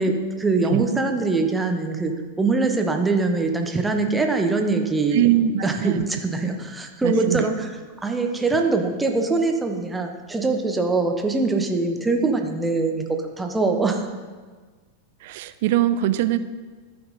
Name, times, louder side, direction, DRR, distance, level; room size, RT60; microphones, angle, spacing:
voice 1, 0.0-2.1 2.4-5.3 5.6-7.7 8.0-13.0 13.4-14.1, right 3 dB, 10° right, 3 dB, 1.1 m, -23 dB
voice 2, 5.1-6.0 6.4-6.5 7.0-7.5 15.2-16.4, right 12 dB, 50° right, 13 dB, 0.5 m, -22 dB
14.0 x 5.8 x 4.2 m, 1.4 s
figure-of-eight pair, 90°, 0 cm